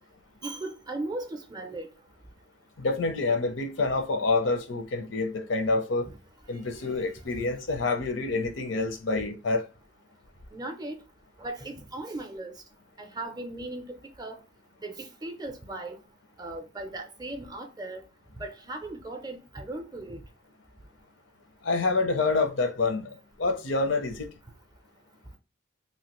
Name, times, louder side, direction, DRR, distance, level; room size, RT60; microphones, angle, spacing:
voice 1, 0.4-1.9 10.5-11.0 11.4-12.5 13.0-14.4 14.8-16.0 16.4-18.0 18.4-20.2, right 2 dB, 20° right, 0.5 m, -37 dB
voice 2, 2.8-6.1 6.5-9.6 21.6-23.1 23.4-24.3, left 3 dB, 75° left, 0.6 m, -27 dB
3.1 x 2.5 x 2.9 m
head